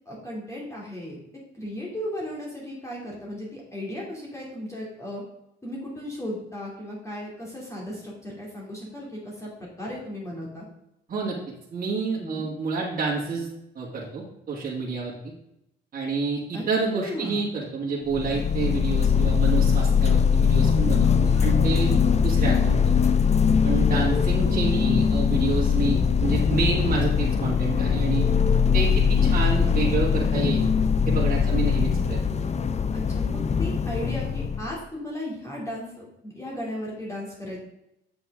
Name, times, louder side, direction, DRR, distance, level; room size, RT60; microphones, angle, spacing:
voice 1, 0.1-1.2 1.5-5.2 5.6-10.7 12.2-12.5 16.5-16.6 16.9-17.5 18.6-18.8 21.3-22.1 24.1-24.2 24.6-24.9 25.8-26.1 29.2-29.4 31.4-32.1 32.9-37.6, left 1 dB, 15° left, -4 dB, 2.7 m, -36 dB
voice 2, 11.7-13.5 13.7-15.1 15.9-21.9 22.2-22.9 23.6-28.2 28.7-30.7 31.1-32.2, right 4 dB, 45° right, -6 dB, 2.3 m, -28 dB
sound 1, 18.1-34.7, left 6 dB, 35° left, 0.6 m, -21 dB
8.1 x 6.0 x 3.7 m, 0.82 s
cardioid pair, 90°, 20 cm